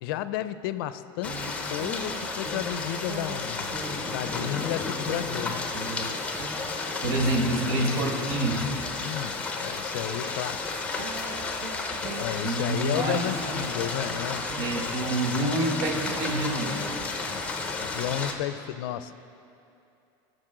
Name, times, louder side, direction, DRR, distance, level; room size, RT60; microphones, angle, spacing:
voice 1, 0.0-5.7 9.0-10.7 12.0-14.5 17.8-19.1, left 12 dB, 90° left, 14 dB, 0.4 m, -33 dB
sound 1, 1.2-18.3, left 3 dB, 10° left, 0.7 m, -32 dB
sound 2, 1.2-2.8 3.1-8.9 11.0-12.3 13.4-14.7 16.0-17.4, right 3 dB, 55° right, 1.2 m, -40 dB
voice 2, 7.0-8.7 12.4-13.3 14.6-16.8, right 1 dB, 80° right, 1 dB, 1.6 m, -27 dB
16.0 x 6.5 x 3.8 m, 2.7 s
cardioid pair, 160°, 11 cm